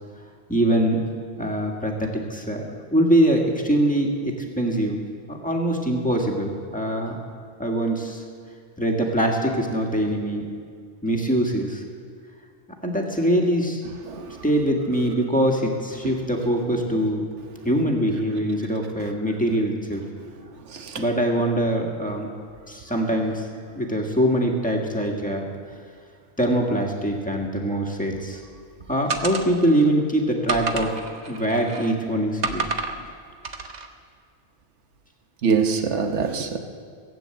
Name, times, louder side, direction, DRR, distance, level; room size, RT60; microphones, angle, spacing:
voice 1, 0.5-1.1 1.4-5.0 5.3-7.2 7.6-8.2 8.8-10.4 11.0-11.8 12.8-13.8 14.4-17.3 17.7-20.0 21.0-22.3 22.7-23.5 23.7-25.5 26.4-28.4 28.9-30.9 31.3-32.7, right 1 dB, 5° left, 0 dB, 1.8 m, -23 dB
voice 2, 14.1-14.4 16.0-16.1 20.7-21.0 35.4-36.6, right 5 dB, 90° right, 6 dB, 1.4 m, -24 dB
sound 1, 29.1-29.9 30.5-32.0 32.4-33.0 33.4-33.9, right 3 dB, 40° right, 1.0 m, -30 dB
17.0 x 9.1 x 7.8 m, 2.1 s
omnidirectional pair, 1.2 m